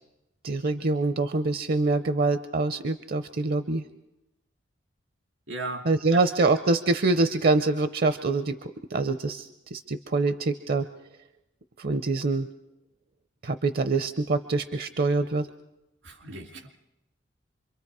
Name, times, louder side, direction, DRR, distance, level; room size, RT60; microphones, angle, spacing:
voice 1, 0.4-3.8 5.9-8.5 8.9-10.9 11.8-12.5 13.4-15.5, right 3 dB, 55° right, 10 dB, 0.6 m, -25 dB
voice 2, 5.5-6.2 16.0-16.7, right 2 dB, 90° right, 4 dB, 2.6 m, -37 dB
27.0 x 23.0 x 4.8 m, 0.94 s
head